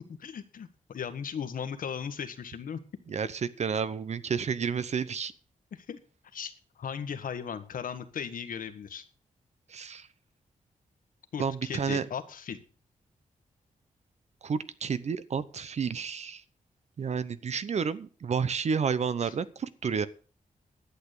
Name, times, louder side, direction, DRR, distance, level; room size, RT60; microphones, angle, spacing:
voice 1, 0.1-2.8 5.7-6.0 6.3-9.0 11.3-12.6 19.2-19.3, left 7 dB, 80° left, 9 dB, 1.5 m, -37 dB
voice 2, 3.1-5.3 9.7-10.1 11.4-12.0 14.4-16.4 17.0-20.1, right 6 dB, 50° right, 15 dB, 0.8 m, -30 dB
11.5 x 8.3 x 6.8 m, 0.39 s
wide cardioid pair, 140°, 14 cm